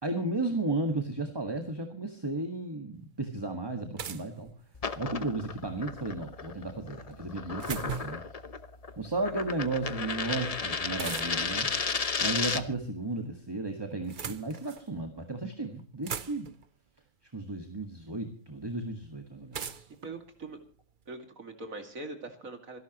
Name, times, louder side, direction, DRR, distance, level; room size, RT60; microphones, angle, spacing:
voice 1, 0.0-4.5 5.0-8.2 9.0-11.7 12.2-16.5 17.3-19.8, right 2 dB, 20° right, 5 dB, 1.7 m, -34 dB
sound 1, 2.9-3.0 4.0-5.1 7.1-8.3 11.0-11.6 12.7-13.3 13.9-14.9 15.5-15.6 15.8-16.7 17.8-17.9 19.5-21.1, right 7 dB, 45° right, 0.8 m, -40 dB
sound 2, 4.7-12.8, left 5 dB, 35° left, 0.8 m, -34 dB
voice 2, 20.0-20.6 21.1-22.8, right 3 dB, 90° right, 5 dB, 2.8 m, -42 dB
26.5 x 12.0 x 3.0 m, 0.40 s
omnidirectional pair, 1.4 m